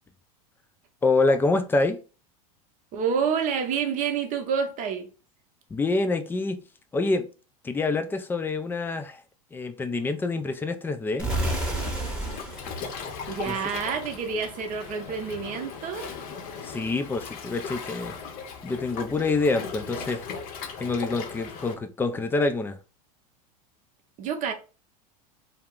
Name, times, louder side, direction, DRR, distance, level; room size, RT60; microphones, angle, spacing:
voice 1, 1.0-2.0 5.7-6.6 6.9-7.3 7.6-9.2 9.5-11.3 13.5-13.6 16.6-18.1 18.6-20.3 20.8-22.8, left 3 dB, 10° left, 0.3 m, -26 dB
voice 2, 2.9-5.1 13.3-16.1 24.2-24.5, right 6 dB, 45° right, 0.7 m, -28 dB
sound 1, 11.2-14.1, right 1 dB, 5° right, 0.9 m, -31 dB
Waves surf, 11.4-21.7, left 6 dB, 50° left, 0.6 m, -38 dB
2.3 x 2.0 x 3.5 m
hypercardioid pair, 95°, 19 cm